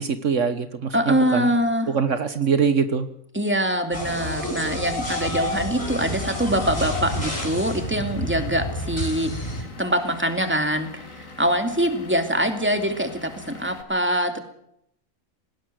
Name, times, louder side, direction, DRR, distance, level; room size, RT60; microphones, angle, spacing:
voice 1, 0.0-1.5 1.9-3.1, right 6 dB, 65° right, 11 dB, 1.6 m, -23 dB
voice 2, 0.9-1.9 3.3-14.4, right 1 dB, 10° right, 7 dB, 2.6 m, -24 dB
sound 1, 3.9-9.6, left 1 dB, 50° left, 6.8 m, -29 dB
Vehicle / Engine, 5.8-13.8, left 3 dB, 80° left, 3.0 m, -43 dB
19.0 x 17.5 x 7.8 m, 0.72 s
omnidirectional pair, 1.4 m